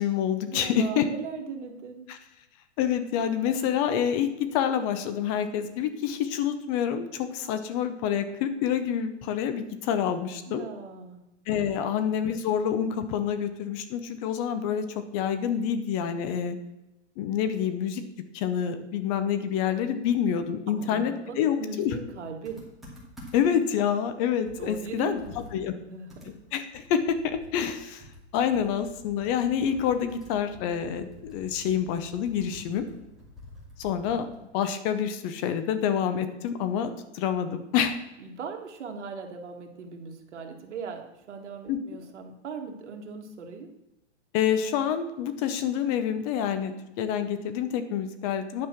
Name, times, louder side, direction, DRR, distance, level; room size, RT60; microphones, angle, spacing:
voice 1, 0.0-1.1 2.1-2.2 2.8-10.6 11.5-16.6 17.2-18.0 18.3-22.0 23.3-25.2 25.5-25.7 26.3-28.0 28.3-32.9 33.8-34.3 34.5-38.0 41.7-41.8 44.3-48.7, left 8 dB, 30° left, 10 dB, 0.7 m, -27 dB
voice 2, 0.5-2.1 10.5-11.2 20.7-22.6 24.6-25.2 25.5-26.4 38.2-43.7, right 5 dB, 75° right, 4 dB, 1.8 m, -39 dB
Computer keyboard, 22.4-23.6 24.1-24.2 24.5-27.7 28.0-34.5, left 1 dB, ahead, 2.4 m, -49 dB
9.6 x 5.5 x 5.9 m, 0.95 s
hypercardioid pair, 145°, 35 cm